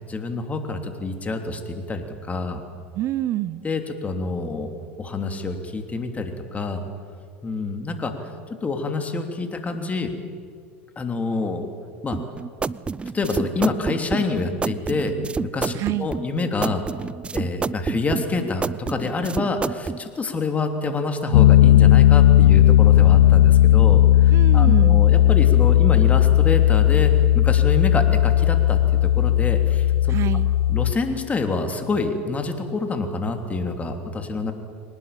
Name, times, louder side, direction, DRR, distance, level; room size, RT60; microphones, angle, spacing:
voice 1, 0.0-2.6 3.6-4.7 5.0-6.8 7.4-10.1 11.0-11.7 12.0-12.2 13.1-16.8 17.3-30.2 30.7-34.5, left 3 dB, 20° left, 6 dB, 3.1 m, -27 dB
voice 2, 2.9-3.6 15.7-16.1 24.3-25.0 30.1-30.5, right 14 dB, 45° right, 17 dB, 0.8 m, -26 dB
sound 1, 12.1-20.0, right 4 dB, 15° right, 0.5 m, -28 dB
Piano, 21.3-30.9, left 13 dB, 75° left, 0.5 m, -15 dB
23.0 x 19.5 x 9.0 m, 2.2 s
hypercardioid pair, 95°, 7 cm